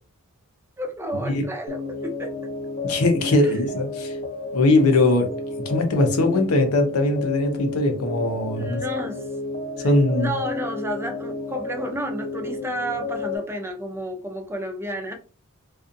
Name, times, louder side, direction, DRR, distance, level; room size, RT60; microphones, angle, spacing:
voice 1, 0.8-2.3 3.3-3.8 8.6-9.3 9.8-15.1, right 1 dB, 10° right, 0.4 m, -31 dB
sound 1, 1.7-13.4, left 3 dB, 45° left, 0.7 m, -31 dB
voice 2, 2.8-4.2 4.5-5.3 5.6-8.8 9.8-10.3, left 2 dB, 85° left, 0.7 m, -20 dB
2.5 x 2.4 x 2.5 m
head